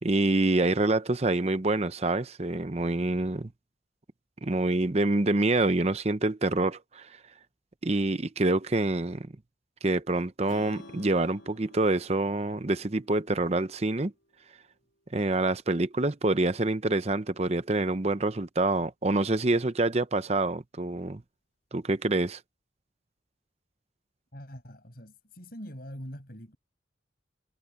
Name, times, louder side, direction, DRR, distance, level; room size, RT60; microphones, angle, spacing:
voice 1, 0.0-3.5 4.4-7.1 7.8-9.3 9.8-14.1 15.1-21.2 21.7-22.4, right 2 dB, 30° right, 0.7 m, -26 dB
Strum, 10.5-14.7, left 2 dB, 75° left, 3.2 m, -52 dB
voice 2, 24.3-26.6, equal, 50° left, 7.1 m, -43 dB
head